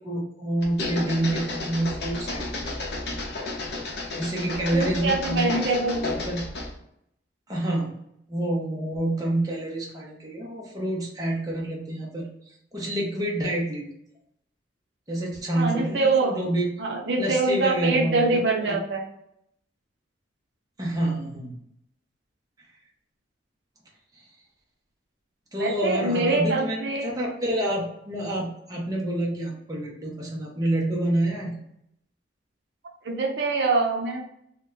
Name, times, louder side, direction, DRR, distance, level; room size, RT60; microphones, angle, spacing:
voice 1, 0.0-2.8 4.1-5.7 5.9-6.5 7.5-7.9 8.3-12.3 12.7-13.9 15.1-16.7 17.2-18.8 20.8-21.5 25.5-31.5, right 1 dB, 20° right, -3 dB, 0.7 m, -28 dB
sound 1, 0.6-6.8, left 2 dB, 55° left, 0.6 m, -32 dB
voice 2, 4.7-6.0 15.6-16.4 16.8-19.0 25.6-27.1 33.0-34.2, right 3 dB, 65° right, 0 dB, 0.6 m, -24 dB
2.9 x 2.1 x 3.7 m, 0.74 s
head